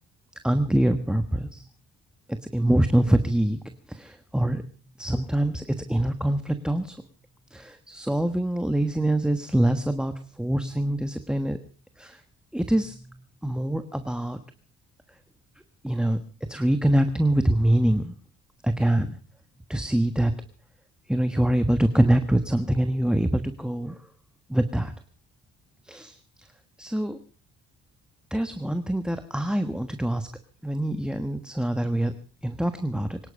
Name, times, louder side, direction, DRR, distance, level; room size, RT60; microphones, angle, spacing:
voice 1, 0.4-1.7 2.5-4.6 5.0-6.9 7.5-11.6 12.0-12.2 12.5-14.4 15.8-16.2 16.5-18.1 18.6-19.2 19.7-20.3 21.1-24.0 24.5-24.9 25.9-26.2 26.8-27.2 28.3-30.3 30.6-32.1 32.4-33.2, right 1 dB, 5° right, 8 dB, 1.3 m, -24 dB
24.5 x 11.0 x 5.4 m, 0.39 s
cardioid pair, 90°, 30 cm